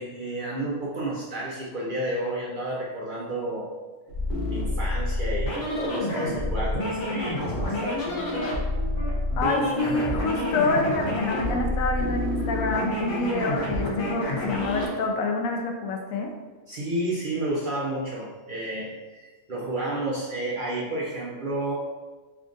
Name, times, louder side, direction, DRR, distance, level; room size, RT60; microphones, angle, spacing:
voice 1, 0.0-3.7 4.5-8.5 9.4-9.5 16.7-21.7, right 1 dB, 55° right, -4 dB, 0.6 m, -31 dB
sound 1, 4.1-14.9, left 2 dB, 65° left, 1.2 m, -28 dB
sound 2, 7.9-11.0 11.3-14.6, equal, 15° left, 0.7 m, -38 dB
voice 2, 9.4-16.3, left 2 dB, 85° left, 2 dB, 1.0 m, -27 dB
3.4 x 2.4 x 3.8 m, 1.3 s
omnidirectional pair, 1.4 m